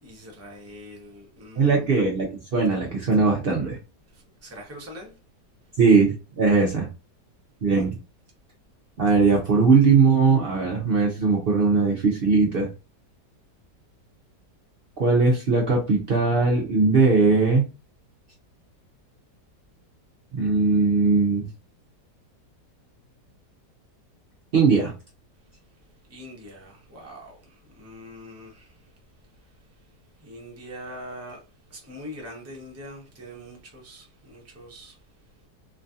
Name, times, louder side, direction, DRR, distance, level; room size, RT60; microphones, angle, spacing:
voice 1, 0.0-2.0 4.1-5.1 26.1-28.9 30.2-31.4 31.7-35.0, equal, 20° right, 0.4 m, -43 dB
voice 2, 1.6-3.8 5.8-6.9 7.6-7.9 9.0-12.7 15.0-17.6 20.4-21.5 24.5-24.9, right 4 dB, 85° right, 0.5 m, -20 dB
3.0 x 2.6 x 2.4 m
omnidirectional pair, 1.9 m